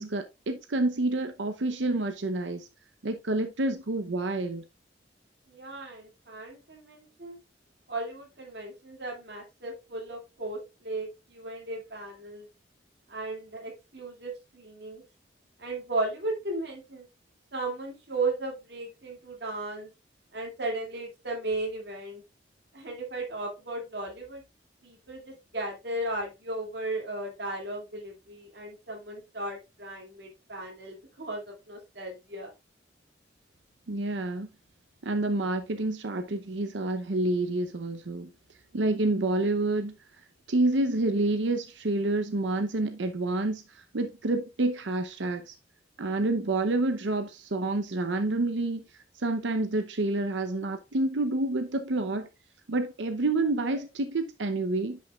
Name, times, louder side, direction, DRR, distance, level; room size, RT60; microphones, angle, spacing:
voice 1, 0.0-2.7 3.0-4.6 33.9-34.5 35.0-38.3 38.7-39.9 40.5-45.5 46.0-52.3 52.7-55.0, right 2 dB, 80° right, 0.7 m, -28 dB
voice 2, 5.5-7.4 7.9-12.5 13.1-15.0 15.6-17.1 17.5-19.9 20.3-22.2 22.7-24.4 24.8-32.5, right 2 dB, 60° right, 2.4 m, -35 dB
10.0 x 5.9 x 2.3 m
head